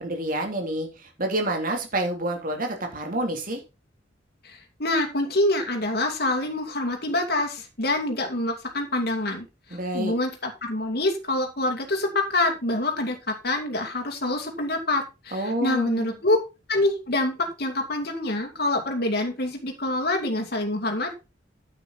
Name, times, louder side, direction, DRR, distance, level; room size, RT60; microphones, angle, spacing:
voice 1, 0.0-3.6 9.7-10.1 15.3-16.2, right 1 dB, 50° right, 3 dB, 3.2 m, -28 dB
voice 2, 4.4-9.5 9.9-16.4 16.7-21.1, left 1 dB, 55° left, 3 dB, 2.4 m, -26 dB
9.6 x 9.1 x 4.2 m, 0.27 s
head